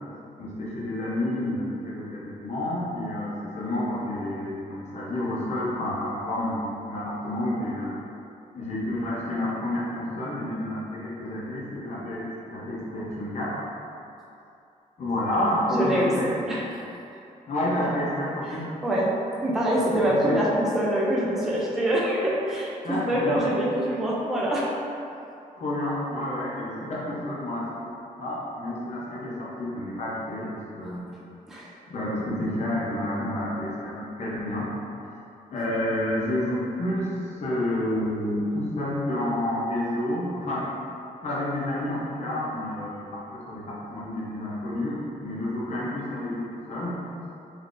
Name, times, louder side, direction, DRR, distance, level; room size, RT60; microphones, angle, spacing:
voice 1, 0.4-7.9 8.5-13.6 15.0-16.3 17.5-18.7 19.8-20.4 22.8-23.4 25.6-31.1 31.9-34.7 35.5-37.1 37.4-40.7 41.2-47.0, left 1 dB, 50° left, -6 dB, 0.7 m, -29 dB
voice 2, 15.7-16.1 16.5-16.8 18.5-19.1 19.4-24.7 30.8-31.0 31.5-31.7, right 1 dB, 5° right, -6 dB, 0.3 m, -25 dB
3.7 x 2.6 x 2.5 m, 2.7 s
wide cardioid pair, 165°, 15 cm